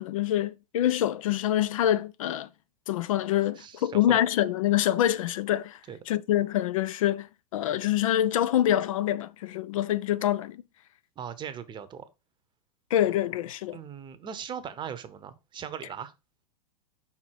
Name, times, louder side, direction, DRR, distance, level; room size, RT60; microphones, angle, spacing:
voice 1, 0.0-2.5 2.9-5.8 6.1-10.6 12.9-13.8, left 12 dB, 60° left, 0.4 m, -26 dB
voice 2, 3.6-4.2 5.9-6.0 11.2-12.1 13.7-16.1, right 8 dB, 25° right, 0.8 m, -39 dB
5.7 x 4.5 x 4.6 m
figure-of-eight pair, 95°, 20 cm